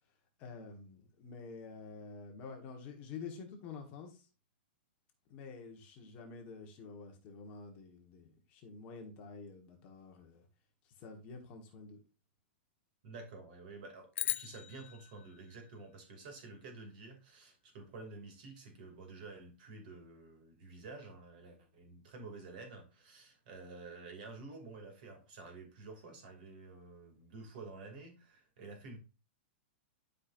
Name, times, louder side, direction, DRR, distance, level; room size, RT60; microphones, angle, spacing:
voice 1, 0.4-4.3 5.3-10.4 11.0-12.0, left 4 dB, 25° left, 3 dB, 1.3 m, -49 dB
voice 2, 13.0-29.0, right 3 dB, 45° right, 4 dB, 2.5 m, -50 dB
sound 1, 14.1-16.6, left 11 dB, 75° left, 0.3 m, -41 dB
12.0 x 5.1 x 2.6 m, 0.32 s
supercardioid pair, 175°, 6 cm